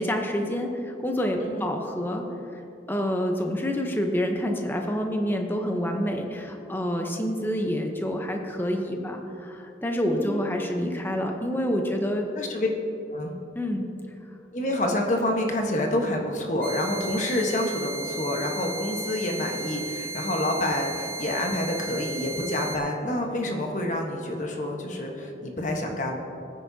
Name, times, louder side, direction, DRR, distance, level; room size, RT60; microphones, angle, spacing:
voice 1, 0.0-2.2 2.9-12.3 13.5-13.8, equal, 10° left, 3 dB, 0.8 m, -27 dB
voice 2, 1.4-1.7 10.1-10.4 12.3-12.7 13.1-13.3 14.5-26.2, left 1 dB, 40° left, 1 dB, 1.3 m, -28 dB
sound 1, 16.6-22.8, right 2 dB, 50° right, 2.0 m, -35 dB
18.5 x 9.8 x 2.8 m, 2.8 s
head